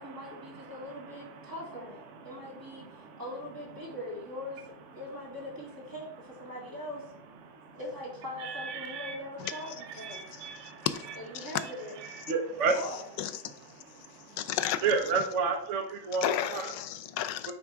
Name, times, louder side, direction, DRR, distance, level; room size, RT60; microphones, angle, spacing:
voice 1, 0.0-2.0 2.2-2.8 3.2-7.1 7.7-10.3 11.2-11.9 12.7-13.1, left 1 dB, 10° right, 2.0 m, -41 dB
voice 2, 8.4-9.2 9.4-10.7 11.6-11.7 12.0-12.7 14.8-16.7 17.5-17.6, right 5 dB, 55° right, 0.9 m, -31 dB
voice 3, 13.2-13.5 14.4-14.8 15.2-15.3 16.2-17.5, left 11 dB, 90° left, 1.3 m, -32 dB
8.6 x 3.4 x 4.5 m
omnidirectional pair, 1.9 m